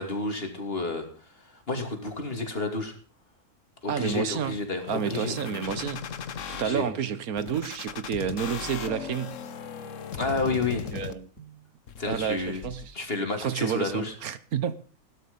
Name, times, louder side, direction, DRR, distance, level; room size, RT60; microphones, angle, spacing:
voice 1, 0.0-2.9 3.8-5.8 6.6-6.9 10.1-10.8 12.0-12.6 12.9-14.1, left 3 dB, 40° left, 3.1 m, -31 dB
voice 2, 3.9-4.5 4.9-6.0 6.5-9.4 10.9-11.6 12.0-12.9 13.4-14.7, right 8 dB, 75° right, 1.5 m, -30 dB
sound 1, 4.9-6.6 7.4-11.4 11.9-12.9, left 7 dB, 60° left, 1.3 m, -37 dB
16.0 x 12.5 x 5.3 m
omnidirectional pair, 1.6 m